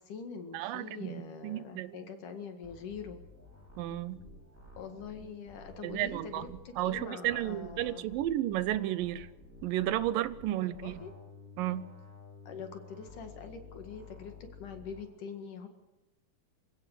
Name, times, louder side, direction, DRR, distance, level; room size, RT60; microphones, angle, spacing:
voice 1, 0.0-3.2 4.8-8.0 10.6-11.1 12.5-14.3 14.6-15.7, left 5 dB, 65° left, 6 dB, 3.4 m, -44 dB
voice 2, 0.5-2.0 3.8-4.2 5.8-9.3 9.6-11.0 11.6-11.9, right 13 dB, 80° right, 16 dB, 2.4 m, -33 dB
sound 1, 2.6-15.0, left 3 dB, 5° right, 6.5 m, -52 dB
26.5 x 16.5 x 6.6 m, 0.99 s
omnidirectional pair, 4.0 m